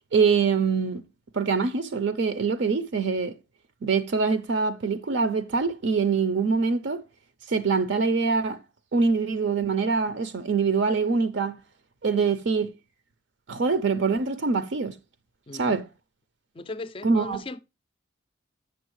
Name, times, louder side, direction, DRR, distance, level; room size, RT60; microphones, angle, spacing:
voice 1, 0.1-1.0 1.3-3.4 3.8-7.0 7.5-8.6 8.9-11.6 12.0-12.7 13.5-15.0 15.5-15.9 17.0-17.4, right 5 dB, 65° right, 0.5 m, -24 dB
voice 2, 15.5-15.8 16.5-17.6, left 2 dB, 25° left, 0.3 m, -37 dB
8.3 x 6.3 x 3.0 m
head